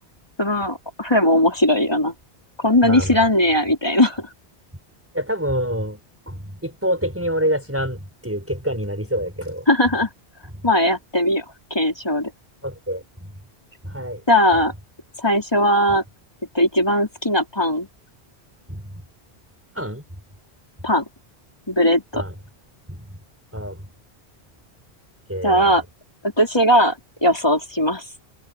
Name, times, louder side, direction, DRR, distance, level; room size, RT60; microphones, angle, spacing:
voice 1, 0.4-2.1 2.6-4.3 9.7-10.1 10.6-11.4 11.7-12.3 14.3-14.7 15.2-16.0 16.5-17.9 20.8-21.0 21.7-22.2 25.4-25.8 26.4-27.0 27.2-28.0, left 1 dB, 25° left, 3.8 m, -18 dB
voice 2, 2.8-3.3 5.1-9.7 10.5-10.6 12.6-13.3 13.8-14.2 18.7-18.9 19.7-20.0 22.1-22.3 22.9-23.1 23.5-23.8 25.3-25.7, equal, 10° right, 5.3 m, -27 dB
open air
omnidirectional pair, 1.1 m